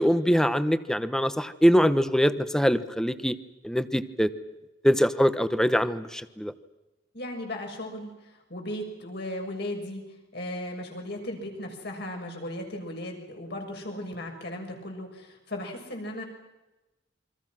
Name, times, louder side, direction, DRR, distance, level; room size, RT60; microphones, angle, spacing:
voice 1, 0.0-3.4 3.6-4.3 4.8-6.5, equal, 5° left, 12 dB, 1.1 m, -23 dB
voice 2, 7.1-10.0 10.3-16.2, left 1 dB, 60° left, 2 dB, 6.7 m, -36 dB
29.0 x 24.5 x 6.2 m, 1.0 s
head